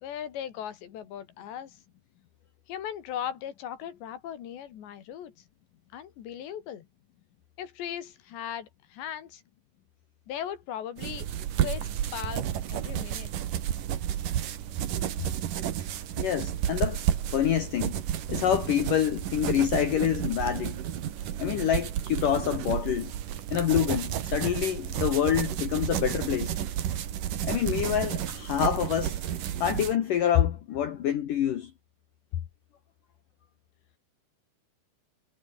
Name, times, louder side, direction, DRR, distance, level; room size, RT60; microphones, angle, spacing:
voice 1, 0.0-1.8 2.7-5.3 5.9-6.8 7.6-9.4 10.3-11.3 11.6-13.3, left 10 dB, 80° left, 4.7 m, -38 dB
sound 1, 11.0-30.0, right 10 dB, 60° right, 3.0 m, -31 dB
voice 2, 16.2-17.0 17.3-18.0 18.3-20.8 21.4-23.1 23.5-26.5 27.4-29.2 29.6-31.7, left 10 dB, 60° left, 2.7 m, -26 dB
omnidirectional pair, 5.0 m